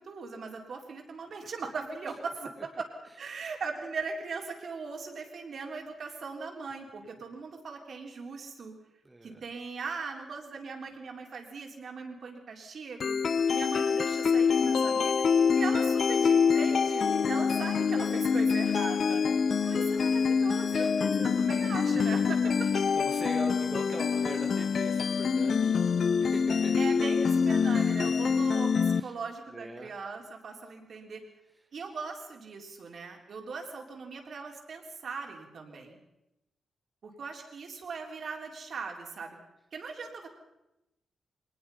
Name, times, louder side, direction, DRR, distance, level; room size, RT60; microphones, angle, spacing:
voice 1, 0.0-2.9 3.2-8.8 9.2-13.2 13.5-15.2 15.5-19.2 19.7-22.8 26.7-31.2 31.7-36.0 37.0-39.4 39.7-40.3, right 4 dB, 50° right, 2 dB, 3.8 m, -39 dB
voice 2, 9.0-9.5 17.4-17.5 19.7-19.9 20.7-20.9 21.9-22.2 22.9-25.8 26.2-26.7 27.7-28.3 28.9-29.2 29.5-29.9, right 1 dB, 15° right, 2 dB, 1.7 m, -41 dB
sound 1, 13.0-29.0, left 6 dB, 50° left, 0.8 m, -26 dB
23.5 x 19.5 x 5.6 m, 0.92 s
wide cardioid pair, 155°, 0 cm